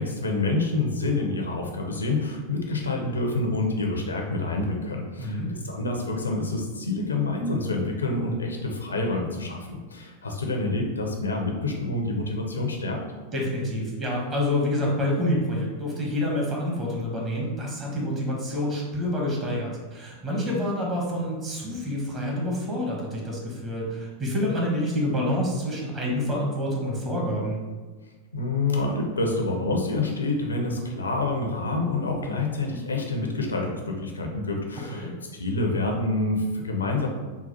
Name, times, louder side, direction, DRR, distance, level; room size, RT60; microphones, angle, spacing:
voice 1, 0.0-5.4 5.6-13.0 28.3-37.1, left 2 dB, 75° left, 1 dB, 0.6 m, -27 dB
voice 2, 5.2-5.5 13.3-27.6 34.9-35.1, left 1 dB, 25° right, -2 dB, 1.2 m, -27 dB
4.0 x 2.4 x 4.0 m, 1.3 s
figure-of-eight pair, 90°, 0 cm